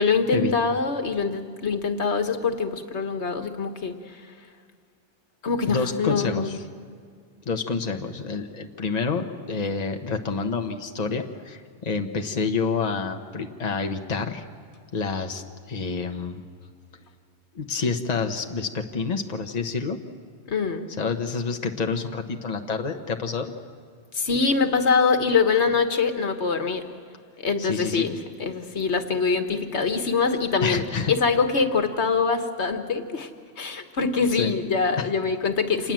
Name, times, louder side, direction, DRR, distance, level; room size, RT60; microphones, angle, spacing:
voice 1, 0.0-4.2 5.4-6.6 20.5-20.9 24.1-26.9 27.4-33.3 33.6-35.9, left 5 dB, 80° left, 7 dB, 1.7 m, -24 dB
voice 2, 5.7-6.6 7.5-14.5 14.9-16.4 17.5-20.0 21.0-23.5 27.6-28.1 30.6-31.1 34.4-34.5 35.0-35.1, left 4 dB, 40° left, 5 dB, 1.2 m, -28 dB
27.5 x 20.0 x 7.6 m, 2.1 s
omnidirectional pair, 1.1 m